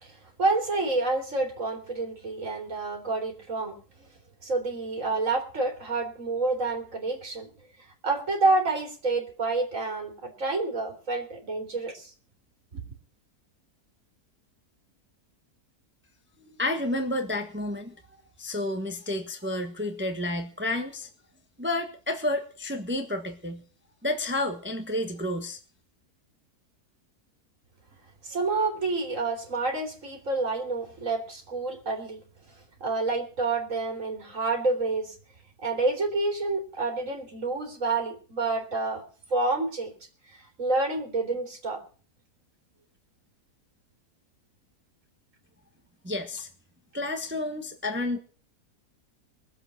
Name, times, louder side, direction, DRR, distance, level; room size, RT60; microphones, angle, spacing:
voice 1, 0.0-3.8 4.4-7.5 8.0-12.1 12.7-12.8 28.2-32.2 32.8-35.2 35.6-39.0 39.3-39.9 40.3-41.8, right 3 dB, 55° right, 2 dB, 3.4 m, -28 dB
voice 2, 16.6-17.9 18.4-21.1 21.6-23.6 24.0-25.6 46.0-46.5 46.9-48.2, left 1 dB, 10° right, 5 dB, 1.2 m, -30 dB
21.5 x 7.8 x 5.9 m, 0.41 s
omnidirectional pair, 1.6 m